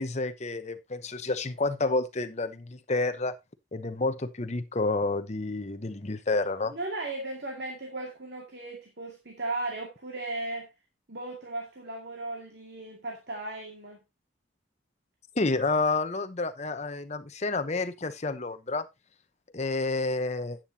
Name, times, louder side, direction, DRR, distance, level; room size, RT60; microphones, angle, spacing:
voice 1, 0.0-3.4 3.7-6.7 15.4-18.9 19.5-20.6, left 3 dB, 35° left, 0.9 m, -29 dB
voice 2, 6.7-10.7 11.1-14.0, right 2 dB, 60° right, 2.2 m, -36 dB
11.0 x 9.2 x 2.8 m
head